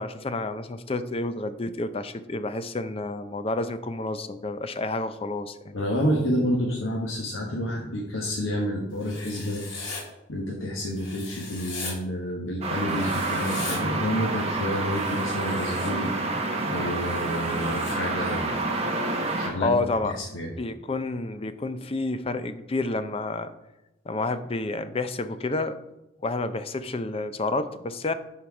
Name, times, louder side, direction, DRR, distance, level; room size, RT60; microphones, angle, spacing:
voice 1, 0.0-5.7 19.6-20.2 20.6-23.5 24.1-25.8 26.2-28.1, left 2 dB, 30° left, 11 dB, 0.5 m, -29 dB
voice 2, 5.7-9.6 10.3-16.1 16.6-18.7 19.4-19.7 20.0-20.5, equal, 85° left, -2 dB, 1.4 m, -29 dB
Writing, 9.0-10.0 11.0-11.9 12.9-13.8 14.9-15.9 16.9-18.0, left 3 dB, 65° left, 2.9 m, -39 dB
sound 1, 12.6-19.5, right 2 dB, 30° right, 1.3 m, -28 dB
11.0 x 4.5 x 4.8 m, 0.94 s
head